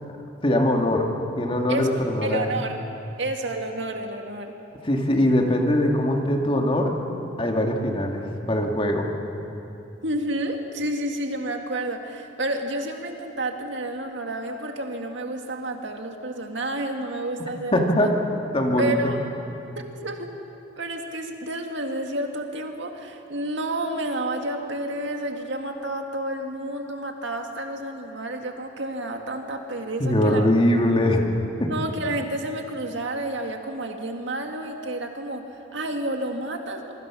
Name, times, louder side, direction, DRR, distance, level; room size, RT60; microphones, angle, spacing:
voice 1, 0.4-1.1 1.4-2.6 4.8-6.9 7.4-9.1 17.7-18.1 18.5-19.0 30.0-31.3 31.6-31.7, left 1 dB, 30° left, 2 dB, 2.2 m, -22 dB
voice 2, 1.7-2.8 3.2-4.5 10.0-18.1 18.8-19.2 19.8-20.3 20.8-30.5 31.7-36.9, right 1 dB, 70° right, 4 dB, 2.1 m, -30 dB
26.0 x 23.0 x 6.2 m, 2.9 s
head